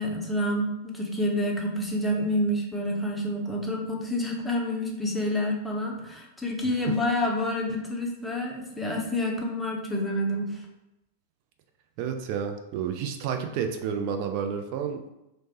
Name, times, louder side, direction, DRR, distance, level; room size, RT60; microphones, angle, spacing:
voice 1, 0.0-10.6, left 1 dB, 5° left, -2 dB, 0.6 m, -28 dB
voice 2, 12.0-15.0, right 7 dB, 45° right, 5 dB, 0.4 m, -30 dB
3.1 x 2.0 x 2.8 m, 0.91 s
figure-of-eight pair, 95°, 0 cm